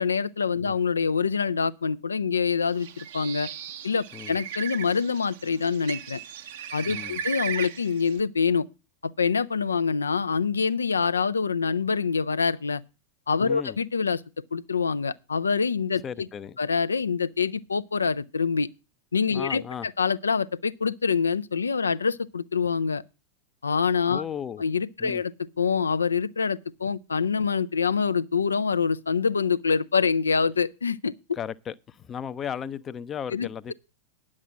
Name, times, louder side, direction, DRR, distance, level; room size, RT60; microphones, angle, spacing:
voice 1, 0.0-3.5 3.8-6.2 6.7-8.6 9.0-12.8 13.3-14.2 14.5-16.0 16.6-18.7 19.1-23.0 23.6-24.2 24.6-31.1 33.3-33.7, left 5 dB, 75° left, 0.5 m, -25 dB
Bird, 2.7-8.2, right 8 dB, 55° right, 0.8 m, -37 dB
voice 2, 6.9-7.2 13.4-13.8 16.0-16.6 19.3-19.9 24.1-24.6 25.0-25.2 31.4-33.7, left 8 dB, 25° left, 0.6 m, -35 dB
10.0 x 7.5 x 6.1 m
figure-of-eight pair, 90°, 0 cm